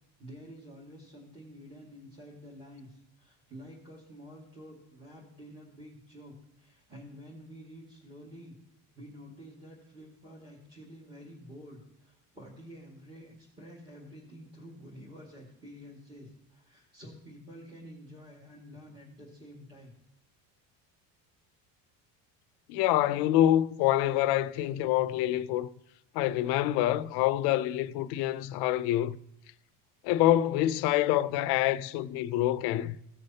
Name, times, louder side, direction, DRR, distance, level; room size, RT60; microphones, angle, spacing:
voice 1, 0.2-8.5 9.0-19.9, equal, 15° right, 2.1 m, -49 dB
voice 2, 22.7-25.7 26.1-29.2 30.0-33.0, left 13 dB, 75° left, 0.6 m, -26 dB
16.5 x 6.4 x 2.8 m
cardioid pair, 165°, 39 cm